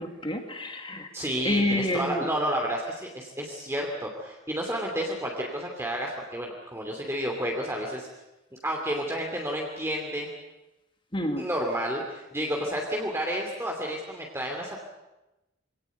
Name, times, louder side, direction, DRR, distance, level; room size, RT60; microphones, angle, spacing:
voice 1, 0.0-1.1 1.4-2.2 11.1-11.5, left 1 dB, 25° left, 5 dB, 2.2 m, -28 dB
voice 2, 1.1-8.1 8.6-10.3 11.4-14.8, equal, 15° right, 0 dB, 2.7 m, -31 dB
24.5 x 18.0 x 9.3 m, 0.99 s
head